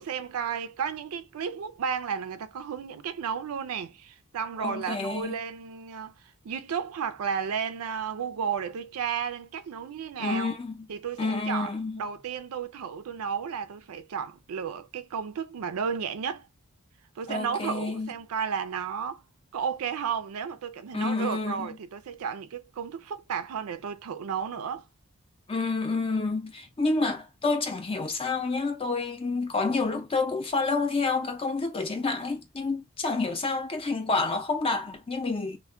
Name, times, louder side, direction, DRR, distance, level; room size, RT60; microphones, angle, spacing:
voice 1, 0.0-6.1 6.4-10.5 10.9-16.5 17.2-19.2 19.5-24.9, right 7 dB, 80° right, 0.4 m, -33 dB
voice 2, 4.6-5.4 10.2-10.7 11.2-12.0 17.3-18.1 20.9-21.7 25.5-35.6, left 3 dB, 25° left, 0.5 m, -29 dB
2.2 x 2.1 x 3.5 m
head